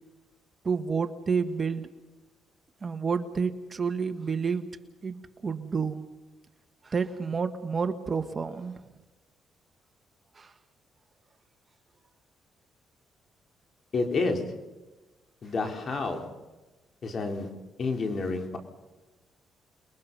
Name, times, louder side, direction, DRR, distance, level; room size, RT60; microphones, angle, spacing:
voice 1, 0.6-1.9 2.8-4.7 5.0-6.0 6.8-8.8 10.4-10.5, right 5 dB, 35° right, 9 dB, 1.5 m, -29 dB
voice 2, 13.9-14.4 15.4-16.3 17.0-17.5 17.8-18.6, left 3 dB, 45° left, 4 dB, 4.0 m, -29 dB
29.5 x 22.0 x 5.5 m, 1.1 s
cardioid pair, 90°, 0 cm